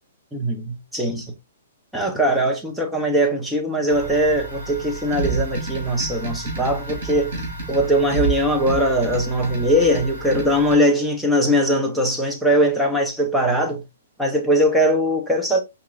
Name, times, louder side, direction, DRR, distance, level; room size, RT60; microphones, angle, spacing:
voice 1, 0.3-1.3 1.9-7.4 7.7-13.8 14.2-15.6, equal, ahead, 0.4 m, -20 dB
sound 1, 3.9-10.8, right 3 dB, 55° right, 2.0 m, -30 dB
4.8 x 3.0 x 2.2 m
hypercardioid pair, 180°, 0 cm